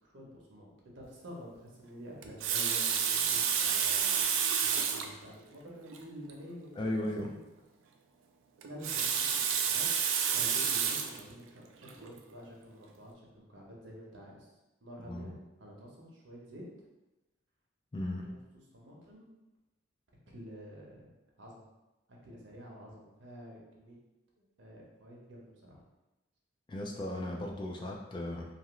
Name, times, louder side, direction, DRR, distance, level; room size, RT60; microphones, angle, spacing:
voice 1, 0.0-6.9 7.3-7.4 8.6-9.9 10.3-14.5 14.8-16.6 18.2-19.2 20.3-21.1 21.4-21.7 22.1-24.0 24.4-25.8, equal, 70° right, -2 dB, 0.8 m, -49 dB
Water tap faucet, 2.2-5.1 5.9-6.0 6.3-6.4 8.6-11.2 11.9-12.1, right 7 dB, 85° right, 0.3 m, -29 dB
voice 2, 6.8-7.3 15.0-15.3 17.9-18.2 26.7-28.5, left 1 dB, 25° left, 0 dB, 0.3 m, -36 dB
2.8 x 2.5 x 3.0 m, 1.0 s
head